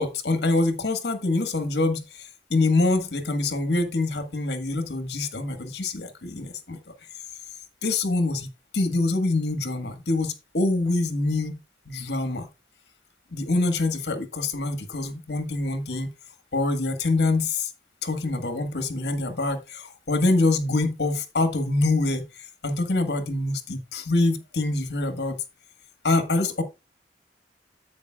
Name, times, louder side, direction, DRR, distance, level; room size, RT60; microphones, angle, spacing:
voice 1, 0.0-6.8 7.8-11.6 11.9-12.5 13.3-16.1 16.5-17.7 18.0-22.2 22.6-25.4 26.0-26.6, left 2 dB, 75° left, 1.6 m, -25 dB
10.5 x 8.3 x 2.4 m
head